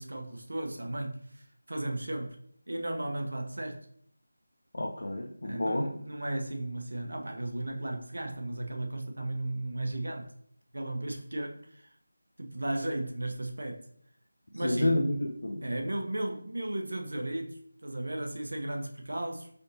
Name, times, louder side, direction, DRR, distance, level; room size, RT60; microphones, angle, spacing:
voice 1, 0.0-2.4 2.7-3.9 5.4-10.3 10.7-11.9 12.4-13.9 14.5-15.0 15.6-19.5, right 1 dB, 80° right, 0.7 m, -35 dB
voice 2, 4.7-5.9 14.6-15.7, left 1 dB, 55° left, 0.4 m, -29 dB
4.0 x 3.4 x 2.7 m
figure-of-eight pair, 180°, 0 cm